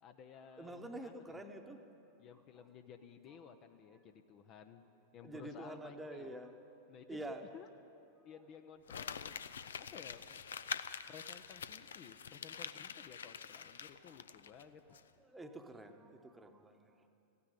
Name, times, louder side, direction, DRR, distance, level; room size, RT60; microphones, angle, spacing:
voice 1, 0.0-1.4 2.2-4.8 5.1-6.4 6.9-7.2 7.5-7.7 8.2-9.3 9.6-10.4 11.1-14.8, left 7 dB, 35° left, 8 dB, 0.7 m, -55 dB
voice 2, 0.6-1.8 5.2-6.6 7.1-7.4 8.2-8.3 15.2-17.1, right 1 dB, 10° right, 5 dB, 1.1 m, -47 dB
Crumpling crinkling, 8.9-14.6 14.9-15.0, left 7 dB, 65° left, 0.5 m, -45 dB
15.0 x 9.8 x 9.7 m, 2.7 s
figure-of-eight pair, 90°, 0 cm